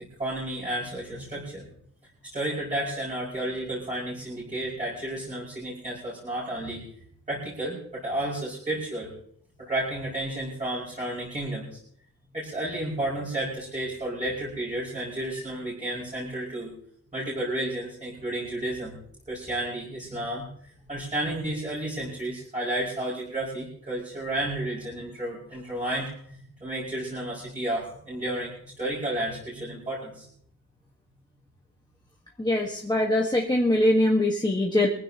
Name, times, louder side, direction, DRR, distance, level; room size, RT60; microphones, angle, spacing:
voice 1, 0.2-1.6 2.3-6.9 7.3-9.1 9.6-11.8 12.3-16.7 17.1-18.9 19.3-20.5 20.9-30.3, right 1 dB, 20° right, -7 dB, 6.1 m, -32 dB
voice 2, 32.4-34.9, left 1 dB, 10° left, -1 dB, 1.5 m, -22 dB
23.0 x 15.5 x 2.9 m, 0.64 s
wide cardioid pair, 150°, 33 cm